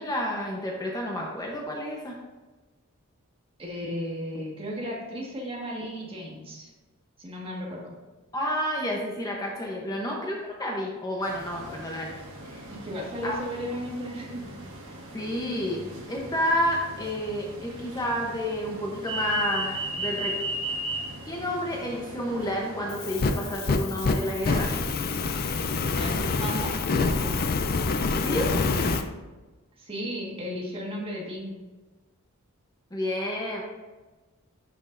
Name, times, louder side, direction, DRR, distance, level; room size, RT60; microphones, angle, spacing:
voice 1, 0.0-2.2 8.3-12.2 12.4-12.6 13.2-13.4 15.1-20.3 21.2-24.7 28.2-28.5 32.9-33.6, equal, 15° left, -2 dB, 0.9 m, -30 dB
voice 2, 3.6-6.7 7.2-7.9 12.8-14.5 25.9-27.5 28.2-29.0 29.8-31.5, equal, 25° right, -3 dB, 1.7 m, -35 dB
sound 1, 11.2-26.1, right 1 dB, 60° right, 1.4 m, -38 dB
Fire, 22.9-29.0, left 3 dB, 45° left, 0.5 m, -26 dB
11.0 x 5.3 x 2.6 m, 1.2 s
head